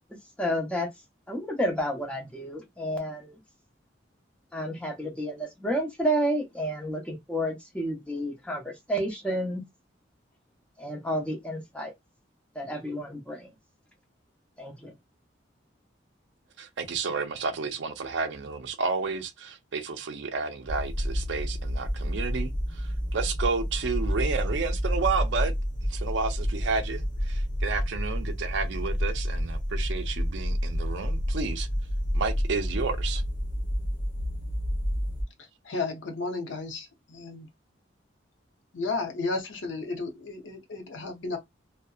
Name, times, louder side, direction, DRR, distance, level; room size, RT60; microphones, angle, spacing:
voice 1, 0.4-0.9 1.3-3.4 4.5-9.6 10.8-11.9 12.5-13.5 14.6-14.9, equal, 5° left, 0.7 m, -30 dB
voice 2, 16.6-25.6 25.9-31.7 32.1-33.2, right 4 dB, 70° right, 0.4 m, -31 dB
sound 1, 20.7-35.2, equal, 50° left, 0.9 m, -29 dB
voice 3, 35.6-37.5 38.7-41.4, left 3 dB, 80° left, 0.7 m, -33 dB
2.7 x 2.1 x 2.3 m
head